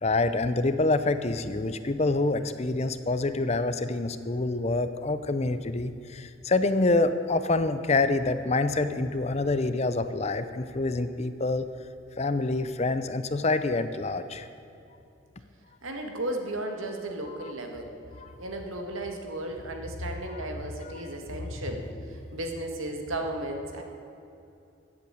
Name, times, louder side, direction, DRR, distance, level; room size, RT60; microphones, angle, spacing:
voice 1, 0.0-11.7 12.2-14.5 17.4-17.5 18.2-18.3 20.3-20.5 20.8-21.0, left 2 dB, 30° left, 11 dB, 0.6 m, -27 dB
voice 2, 15.8-17.9 18.4-23.8, right 1 dB, 85° right, 3 dB, 1.9 m, -35 dB
14.5 x 8.6 x 8.8 m, 2.8 s
head